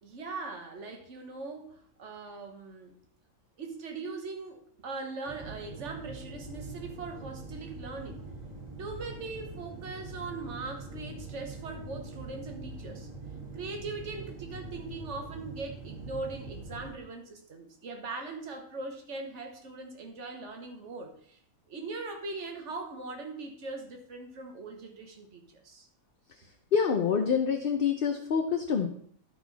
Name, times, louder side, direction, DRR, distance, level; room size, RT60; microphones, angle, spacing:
voice 1, 0.0-2.9 3.6-8.3 8.8-13.1 13.5-21.4 21.7-25.9, right 3 dB, 55° right, 4 dB, 1.5 m, -40 dB
sound 1, 5.3-16.9, right 3 dB, 30° right, 1.6 m, -43 dB
voice 2, 26.7-28.9, left 6 dB, 50° left, 4 dB, 0.7 m, -26 dB
12.5 x 4.6 x 4.0 m, 0.62 s
omnidirectional pair, 1.5 m